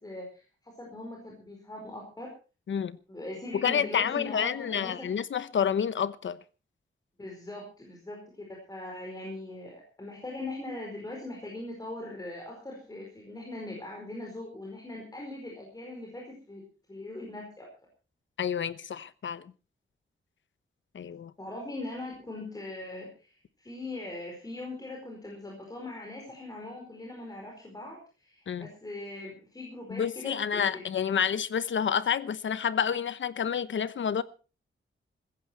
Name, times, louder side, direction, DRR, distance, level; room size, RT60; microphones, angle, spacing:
voice 1, 0.0-2.3 3.1-5.1 7.2-8.2 8.7-16.6 16.9-17.6 21.4-30.8, left 2 dB, 20° left, 4.8 m, -41 dB
voice 2, 3.6-6.4 18.4-19.5 20.9-21.3 28.5-28.7 29.9-34.2, left 8 dB, 65° left, 0.9 m, -29 dB
15.5 x 15.0 x 4.6 m
wide cardioid pair, 150°, 21 cm